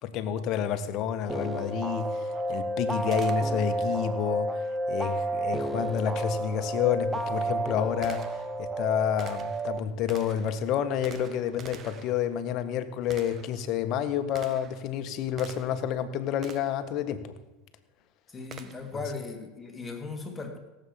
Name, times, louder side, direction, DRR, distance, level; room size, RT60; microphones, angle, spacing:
voice 1, 0.0-17.3, left 9 dB, 50° left, 9 dB, 1.6 m, -29 dB
sound 1, 1.3-9.8, right 2 dB, 5° right, 1.1 m, -31 dB
Gunshot gunfire, 3.1-3.9 6.3-6.4 7.1-15.9 16.4-16.9 18.5-19.0, right 6 dB, 35° right, 1.5 m, -48 dB
voice 2, 18.3-20.6, left 4 dB, 15° left, 3 dB, 3.0 m, -37 dB
17.5 x 8.3 x 7.3 m, 1.1 s
hypercardioid pair, 100°, 0 cm